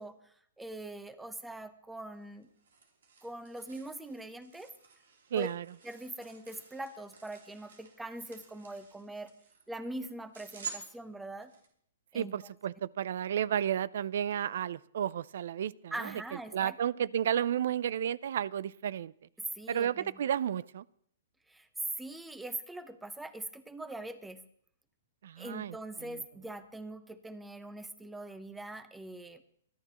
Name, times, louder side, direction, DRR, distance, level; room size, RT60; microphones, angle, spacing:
voice 1, 0.0-2.5 3.2-4.7 5.3-5.5 5.8-9.3 9.7-11.5 12.1-12.4 15.9-16.8 19.4-20.2 21.5-21.7 22.0-24.4 25.4-29.4, right 1 dB, 5° right, 11 dB, 0.9 m, -42 dB
sound 1, 2.1-11.7, right 6 dB, 85° right, 3.3 m, -50 dB
voice 2, 5.3-5.6 12.1-16.1 16.5-19.1 19.7-20.8 25.2-25.8 26.0-26.2, right 9 dB, 65° right, 22 dB, 0.4 m, -32 dB
25.5 x 10.0 x 3.0 m, 0.64 s
hypercardioid pair, 145°, 0 cm